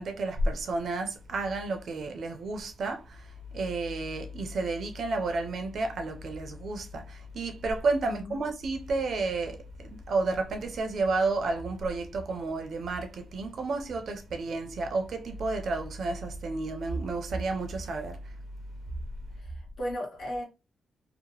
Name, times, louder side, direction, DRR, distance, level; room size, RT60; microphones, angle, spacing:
voice 1, 0.0-18.4, right 3 dB, 60° right, 0.5 m, -31 dB
voice 2, 8.1-8.4 19.4-20.4, equal, 70° left, 1.3 m, -36 dB
2.8 x 2.1 x 2.8 m
wide cardioid pair, 140°, 0 cm